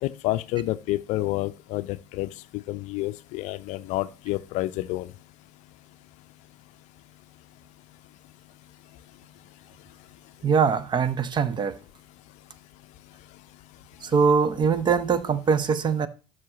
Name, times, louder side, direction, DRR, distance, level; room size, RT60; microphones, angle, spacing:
voice 1, 0.0-2.3 2.7-5.1, left 17 dB, 60° left, 0.5 m, -29 dB
voice 2, 10.4-11.8 14.0-16.1, right 6 dB, 35° right, 0.7 m, -22 dB
12.0 x 6.2 x 2.9 m
hypercardioid pair, 70°, 14 cm